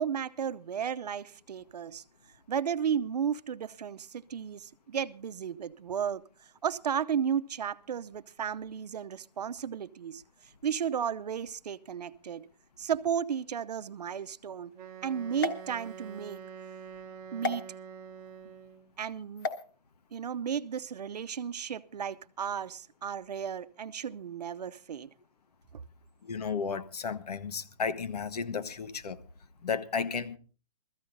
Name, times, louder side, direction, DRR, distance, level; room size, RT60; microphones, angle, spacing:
voice 1, 0.0-2.0 2.5-6.2 6.6-10.2 10.6-12.5 12.8-14.7 15.0-16.4 17.3-17.6 18.5-18.6 19.0-19.5 20.1-25.1, right 8 dB, 70° right, 0.8 m, -34 dB
Wind instrument woodwind instrument, 14.7-18.9, right 7 dB, 15° right, 1.2 m, -46 dB
sound 1, 15.4-16.4 17.4-17.6 19.4-19.6, left 3 dB, 30° left, 1.2 m, -35 dB
voice 2, 26.2-29.2 29.6-30.4, left 5 dB, 70° left, 1.4 m, -33 dB
17.0 x 14.5 x 3.9 m
hypercardioid pair, 175°, 21 cm